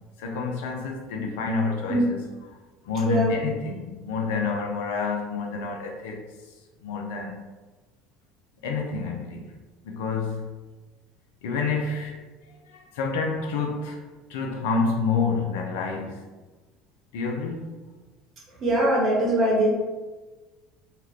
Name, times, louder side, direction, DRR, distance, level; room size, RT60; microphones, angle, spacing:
voice 1, 0.2-2.2 2.9-6.2 6.8-7.4 8.6-9.4 9.8-10.5 11.4-12.2 12.7-14.0 14.3-16.2 17.1-17.7, left 4 dB, 75° left, 1 dB, 0.4 m, -28 dB
voice 2, 18.6-19.7, right 1 dB, 45° right, -4 dB, 1.3 m, -22 dB
2.8 x 2.4 x 3.1 m, 1.2 s
hypercardioid pair, 70°, 0 cm